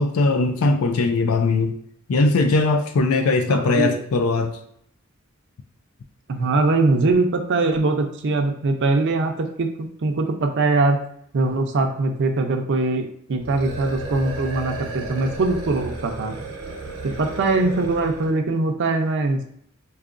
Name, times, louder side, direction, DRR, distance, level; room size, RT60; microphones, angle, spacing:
voice 1, 0.0-1.8 2.1-4.6, left 3 dB, 85° left, 6 dB, 0.4 m, -20 dB
voice 2, 3.5-3.9 6.3-11.0 11.3-16.3 17.2-19.5, right 3 dB, 60° right, 4 dB, 0.5 m, -22 dB
sound 1, 13.4-18.4, right 2 dB, 75° right, 0.9 m, -33 dB
4.7 x 2.7 x 2.5 m, 0.68 s
head